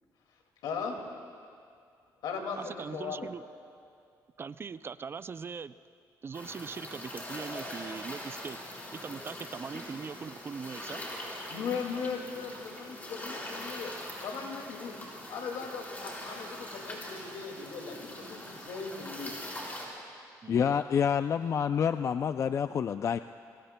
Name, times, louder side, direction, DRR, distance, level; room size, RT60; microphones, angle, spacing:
voice 1, 0.6-1.0 2.2-3.3 11.5-13.9 14.2-14.9 15.3-19.4, left 5 dB, 80° left, 2 dB, 2.2 m, -38 dB
voice 2, 2.6-3.4 4.4-5.7 6.2-8.6 8.9-11.0 20.4-20.8, right 5 dB, 35° right, 15 dB, 0.4 m, -41 dB
sound 1, 6.3-19.9, left 1 dB, 25° left, 4.3 m, -42 dB
voice 3, 20.5-23.2, left 7 dB, 45° left, 10 dB, 0.3 m, -28 dB
23.5 x 23.0 x 2.2 m, 2.3 s
cardioid pair, 90°, 7 cm